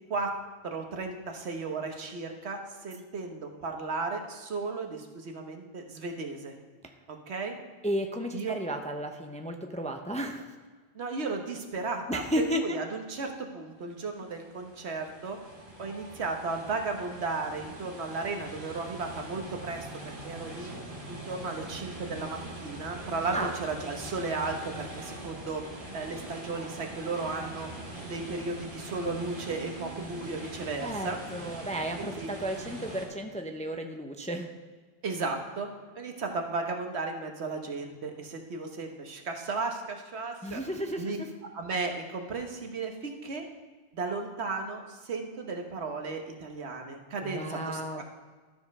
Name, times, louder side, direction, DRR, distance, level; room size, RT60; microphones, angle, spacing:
voice 1, 0.6-6.5 7.1-7.6 8.3-8.6 10.9-12.2 12.6-15.4 15.8-20.8 21.1-27.7 28.0-31.2 32.0-32.3 35.0-35.7 35.9-40.6 40.9-41.2 41.5-43.4 43.9-48.0, right 3 dB, 85° right, 4 dB, 1.4 m, -35 dB
voice 2, 7.8-10.5 12.1-12.8 23.3-23.5 30.8-34.5 40.4-41.3 47.2-48.0, equal, 10° left, 4 dB, 0.5 m, -33 dB
sound 1, 14.0-33.1, right 1 dB, 55° right, 2.0 m, -43 dB
12.5 x 5.2 x 5.4 m, 1.4 s
omnidirectional pair, 1.1 m